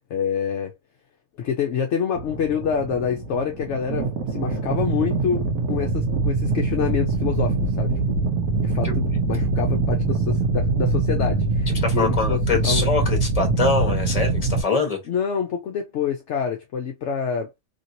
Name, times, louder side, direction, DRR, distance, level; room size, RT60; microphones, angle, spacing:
voice 1, 0.1-0.7 1.4-8.2 8.6-12.9 15.1-17.5, left 7 dB, 65° left, 0.8 m, -27 dB
sound 1, 2.1-14.6, right 3 dB, 80° right, 1.2 m, -23 dB
voice 2, 11.8-15.0, left 4 dB, 30° left, 1.1 m, -24 dB
3.1 x 2.8 x 2.6 m
omnidirectional pair, 1.5 m